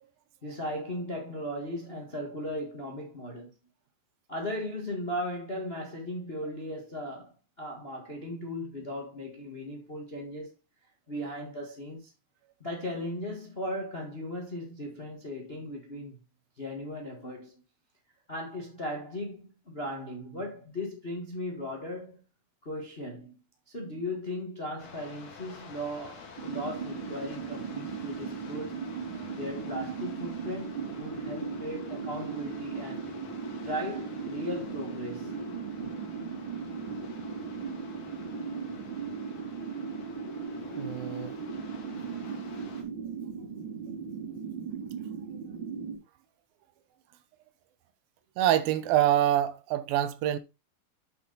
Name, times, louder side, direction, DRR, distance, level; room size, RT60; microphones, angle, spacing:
voice 1, 0.4-3.5 4.3-10.5 11.1-12.1 12.6-16.2 16.6-17.6 18.3-22.2 22.6-23.3 23.7-28.8 29.4-33.1 33.6-35.4 35.8-35.9 41.2-41.3, left 1 dB, 40° left, 0.9 m, -37 dB
sound 1, 24.8-42.8, left 5 dB, 60° left, 2.9 m, -49 dB
sound 2, 26.4-46.0, right 5 dB, 35° right, 4.5 m, -37 dB
voice 2, 40.8-41.4 48.4-50.4, right 12 dB, 85° right, 2.7 m, -25 dB
8.0 x 6.1 x 4.0 m
omnidirectional pair, 4.1 m